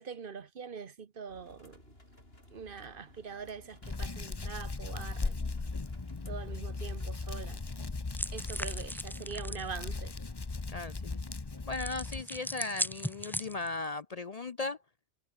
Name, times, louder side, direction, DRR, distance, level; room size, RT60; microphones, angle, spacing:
voice 1, 0.0-1.8 2.5-5.4 6.2-7.6 8.3-10.1, right 6 dB, 55° right, 1.1 m, -43 dB
sound 1, 1.3-7.2, left 1 dB, 60° left, 7.5 m, -57 dB
Hands, 3.8-12.2, left 3 dB, 25° left, 0.9 m, -38 dB
sound 2, 8.1-9.7 11.7-13.8, equal, ahead, 1.8 m, -38 dB
voice 2, 10.7-11.2 11.7-14.8, left 3 dB, 40° left, 0.6 m, -37 dB
omnidirectional pair, 1.1 m